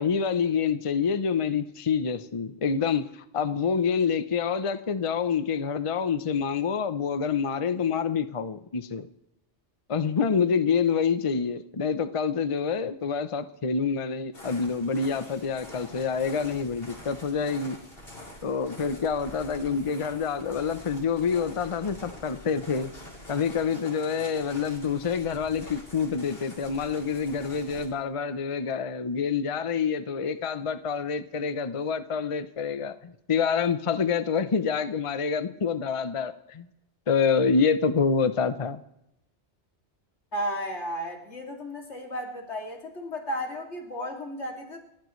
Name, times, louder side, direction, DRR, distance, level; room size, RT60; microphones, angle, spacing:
voice 1, 0.0-9.1 9.9-17.8 18.4-22.9 23.3-36.7 37.1-38.8, left 6 dB, 35° left, 11 dB, 0.7 m, -27 dB
sound 1, 14.3-27.9, left 1 dB, 60° left, 4.2 m, -45 dB
voice 2, 40.3-44.8, equal, 85° left, 1 dB, 2.9 m, -34 dB
29.0 x 14.5 x 3.2 m, 0.82 s
omnidirectional pair, 1.1 m